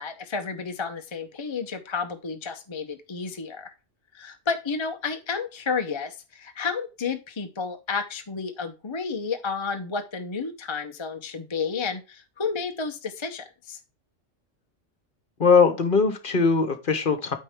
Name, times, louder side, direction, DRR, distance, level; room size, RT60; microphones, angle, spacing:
voice 1, 0.0-3.7 4.1-13.8, left 5 dB, 30° left, 6 dB, 0.6 m, -31 dB
voice 2, 15.4-17.4, left 5 dB, 45° left, 9 dB, 1.3 m, -20 dB
9.1 x 5.4 x 3.5 m, 0.30 s
omnidirectional pair, 1.3 m